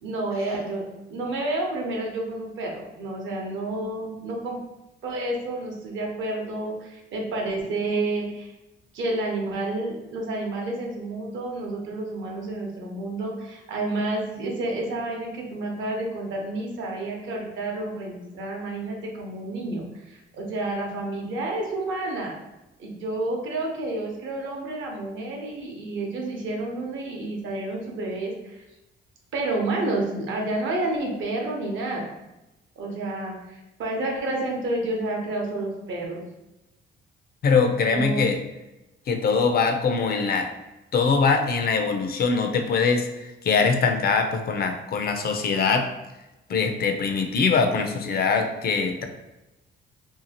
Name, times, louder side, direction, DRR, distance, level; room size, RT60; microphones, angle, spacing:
voice 1, 0.0-4.6 5.0-8.5 8.9-22.4 22.8-28.6 29.3-32.1 32.8-36.2 37.9-38.3, right 2 dB, 75° right, 0 dB, 0.8 m, -30 dB
voice 2, 37.4-38.4 39.1-40.5 40.9-45.9 46.5-49.1, left 5 dB, 50° left, 5 dB, 0.4 m, -22 dB
2.7 x 2.4 x 2.8 m, 0.98 s
cardioid pair, 90°, 20 cm